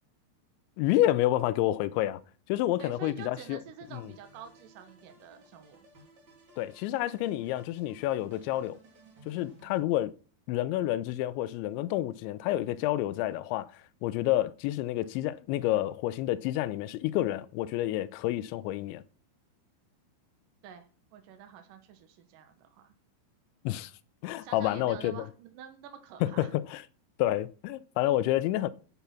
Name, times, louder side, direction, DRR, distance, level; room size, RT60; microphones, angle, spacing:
voice 1, 0.8-2.2 2.5-3.6 3.9-4.1 6.6-8.8 9.3-10.1 10.5-19.0 23.7-23.9 24.2-25.3 26.2-26.8 27.2-28.7, left 14 dB, 80° left, 2.9 m, -29 dB
voice 2, 2.8-5.8 20.6-22.9 24.4-26.5, right 7 dB, 75° right, 2.0 m, -48 dB
sound 1, 3.8-9.8, right 2 dB, 30° right, 2.6 m, -58 dB
9.3 x 8.4 x 5.7 m
omnidirectional pair, 5.4 m